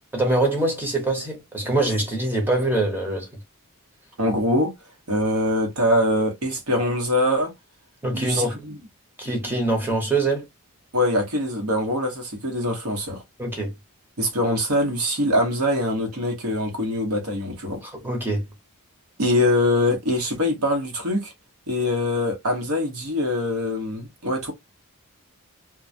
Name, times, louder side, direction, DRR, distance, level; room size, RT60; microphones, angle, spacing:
voice 1, 0.1-3.3 8.0-8.6 9.2-10.4 13.4-13.7 17.8-18.4, right 2 dB, 10° right, 0.9 m, -24 dB
voice 2, 4.2-4.7 5.1-7.5 8.1-8.8 10.9-13.2 14.2-17.8 19.2-21.3 21.7-24.5, left 1 dB, 75° right, 1.0 m, -23 dB
2.2 x 2.1 x 2.5 m
head